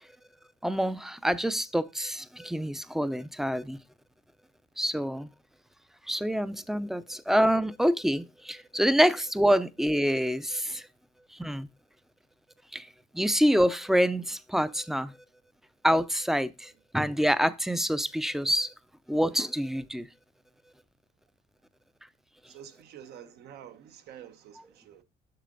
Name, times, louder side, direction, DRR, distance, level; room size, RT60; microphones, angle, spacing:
voice 1, 0.6-3.8 4.8-5.3 6.1-10.9 11.4-11.7 12.7-12.9 13.1-15.1 15.8-18.7 19.1-20.1, equal, ahead, 0.4 m, -26 dB
voice 2, 22.5-25.0, right 10 dB, 75° right, 1.0 m, -48 dB
6.7 x 6.5 x 3.8 m
cardioid pair, 110°, 17 cm